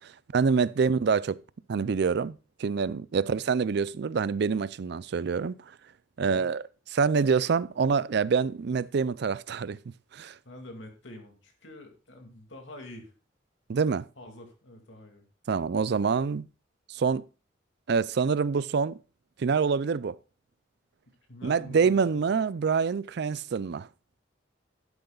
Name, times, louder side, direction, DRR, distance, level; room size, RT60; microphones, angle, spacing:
voice 1, 0.3-1.4 1.7-5.5 6.2-6.6 6.9-9.8 10.1-10.3 13.7-14.1 15.5-16.5 16.9-17.2 17.9-19.0 19.4-20.2 21.4-23.9, right 5 dB, 60° right, 0.4 m, -26 dB
voice 2, 10.4-13.1 14.2-15.2 21.3-22.2, left 1 dB, 75° left, 2.4 m, -47 dB
11.5 x 10.5 x 2.4 m
head